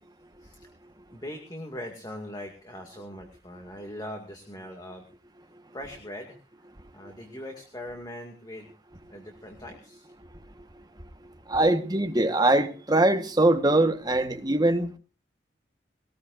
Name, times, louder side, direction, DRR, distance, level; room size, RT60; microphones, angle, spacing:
voice 1, 1.1-5.1 5.7-6.4 6.9-8.7 9.1-10.1, left 1 dB, 20° left, 3 dB, 2.2 m, -41 dB
voice 2, 11.5-15.0, right 2 dB, 20° right, 7 dB, 1.3 m, -22 dB
21.0 x 18.5 x 2.5 m, 0.34 s
head